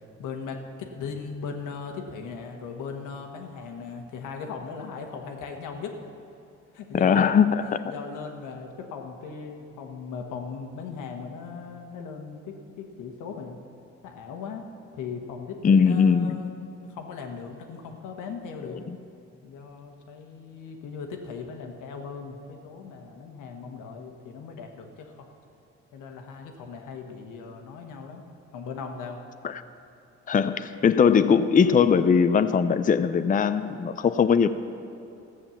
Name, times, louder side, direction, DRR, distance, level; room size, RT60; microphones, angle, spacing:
voice 1, 0.0-5.9 6.7-7.3 7.9-13.6 14.0-14.6 14.9-16.5 16.8-18.8 19.4-25.3 25.9-28.2 28.5-29.2, left 5 dB, 90° left, 3 dB, 1.4 m, -38 dB
voice 2, 6.9-7.8 15.6-16.4 18.6-19.0 29.4-29.6 30.3-34.5, left 6 dB, 30° left, 11 dB, 0.5 m, -20 dB
14.5 x 7.5 x 7.1 m, 2.9 s
cardioid pair, 90°, 30 cm